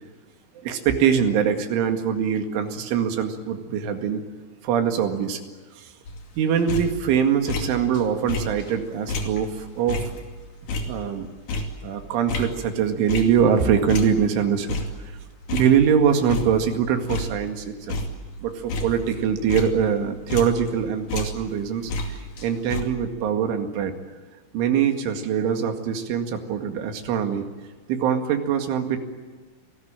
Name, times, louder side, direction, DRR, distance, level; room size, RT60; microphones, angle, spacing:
voice 1, 0.6-4.2 4.6-5.4 5.8-5.9 6.4-10.0 10.9-11.3 11.8-15.0 15.5-18.0 18.4-23.9 24.5-27.5 27.9-29.0, right 7 dB, 85° right, 6 dB, 4.5 m, -23 dB
sound 1, 6.1-8.0 8.3-13.6 13.9-16.0 16.3-16.8 17.1-20.8 21.1-22.8, left 2 dB, 50° left, 3.7 m, -31 dB
29.0 x 19.5 x 8.9 m, 1.4 s
omnidirectional pair, 5.4 m